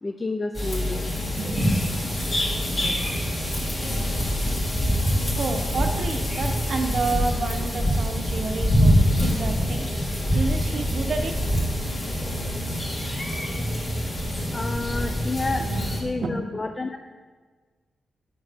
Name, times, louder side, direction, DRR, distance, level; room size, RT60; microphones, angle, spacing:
voice 1, 0.0-1.1 14.5-15.6 16.0-17.0, left 3 dB, 25° left, 5 dB, 0.3 m, -29 dB
sound 1, 0.5-16.0, equal, 50° left, 2.0 m, -25 dB
voice 2, 1.1-1.8 2.1-3.0 5.3-9.9 10.3-11.4 15.6-16.3, right 3 dB, 65° right, 5 dB, 0.7 m, -30 dB
6.5 x 5.7 x 3.4 m, 1.4 s
cardioid pair, 85°, 0 cm